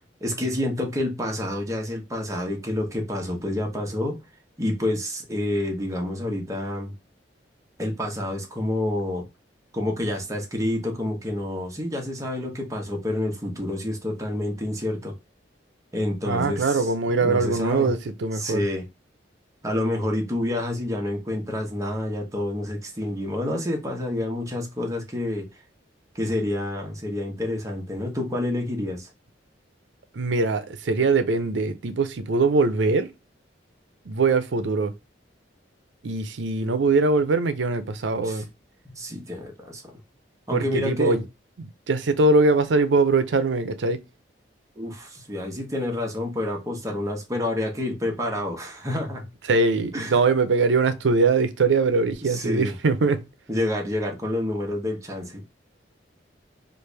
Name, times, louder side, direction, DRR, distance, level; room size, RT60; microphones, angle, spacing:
voice 1, 0.0-4.2 4.6-6.9 7.8-9.2 9.7-15.1 15.9-16.9 17.2-17.9 18.3-18.8 19.6-25.4 26.1-29.1 38.2-38.4 38.8-39.9 40.5-41.2 44.8-49.3 49.9-50.2 52.3-52.7 53.5-55.4, left 1 dB, 20° right, 0.9 m, -28 dB
voice 2, 16.2-18.6 30.1-33.1 34.1-34.9 36.0-38.5 40.5-41.2 41.6-44.0 49.5-53.3, right 3 dB, 80° right, 0.5 m, -22 dB
3.3 x 2.5 x 3.2 m
head